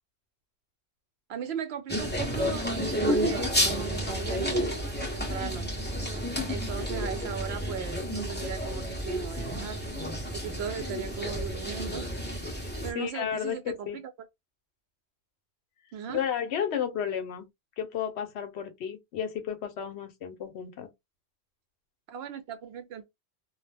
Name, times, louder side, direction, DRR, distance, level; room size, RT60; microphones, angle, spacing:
voice 1, 1.3-5.7 6.5-9.8 10.3-12.1 12.8-14.0 15.9-16.2 22.1-23.1, right 7 dB, 70° right, 0.8 m, -38 dB
sound 1, 1.9-12.9, equal, 10° left, 0.7 m, -31 dB
voice 2, 12.6-14.0 16.1-17.5 17.8-20.9, left 8 dB, 75° left, 0.9 m, -33 dB
2.3 x 2.1 x 3.2 m
omnidirectional pair, 1.1 m